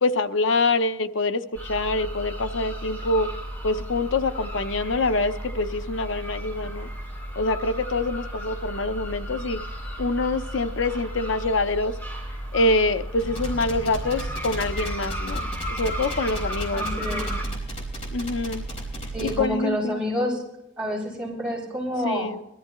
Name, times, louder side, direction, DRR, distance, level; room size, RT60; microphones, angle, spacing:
voice 1, 0.0-3.3 3.6-6.9 7.4-9.6 10.0-11.9 12.5-17.0 18.1-18.6 19.2-20.0 22.0-22.4, left 2 dB, 85° left, 10 dB, 0.7 m, -25 dB
sound 1, 1.5-17.5, equal, 10° left, 4.2 m, -34 dB
sound 2, 13.2-19.4, equal, 35° left, 4.5 m, -33 dB
voice 2, 16.7-17.3 19.1-20.4 20.8-22.3, equal, 5° right, -6 dB, 6.0 m, -28 dB
22.5 x 13.5 x 3.0 m, 0.82 s
head